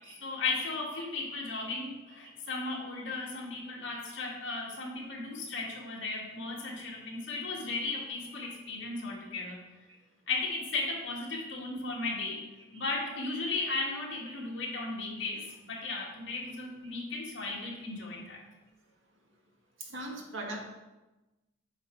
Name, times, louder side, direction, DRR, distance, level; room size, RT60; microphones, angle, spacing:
voice 1, 0.2-9.6 10.3-12.4 12.7-18.4, left 3 dB, 60° left, -3 dB, 2.2 m, -35 dB
voice 2, 1.0-1.4 2.1-2.3 5.0-5.1 6.6-6.7 7.8-7.9 8.2-8.5 10.9-11.0 11.3-11.4 12.7-12.9 14.3-14.4 15.8-15.9 16.8-16.9 18.0-18.1 19.8-20.6, right 2 dB, 70° right, 0 dB, 1.6 m, -44 dB
8.1 x 5.6 x 4.7 m, 1.1 s
head